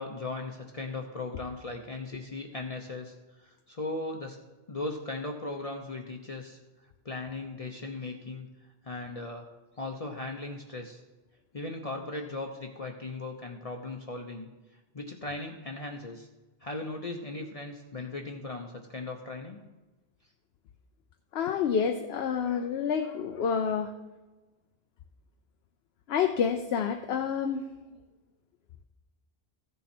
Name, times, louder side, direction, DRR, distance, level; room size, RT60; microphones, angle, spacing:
voice 1, 0.0-4.4 4.7-6.6 7.0-8.5 8.8-9.5 9.8-11.0 11.5-14.5 14.9-16.3 16.6-19.6, left 2 dB, 40° left, 2 dB, 0.8 m, -38 dB
voice 2, 21.3-23.9 26.1-27.6, left 7 dB, 75° left, 6 dB, 0.9 m, -28 dB
14.5 x 7.1 x 4.3 m, 1.1 s
omnidirectional pair, 1.0 m